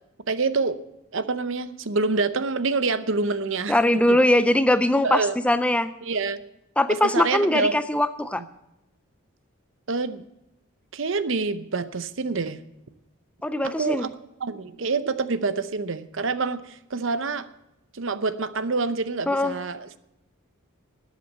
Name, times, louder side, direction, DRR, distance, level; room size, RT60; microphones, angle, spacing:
voice 1, 0.3-0.8 1.1-4.2 5.0-5.3 6.0-6.4 6.9-7.8 8.4-8.5 9.9-10.2 10.9-12.6 13.6-14.1 14.4-17.5 17.9-19.9, right 4 dB, 60° right, 13 dB, 0.7 m, -26 dB
voice 2, 3.7-5.9 6.8-8.4 13.4-14.1 19.3-19.6, left 1 dB, 5° left, 12 dB, 0.4 m, -21 dB
12.5 x 8.3 x 8.1 m, 0.89 s
head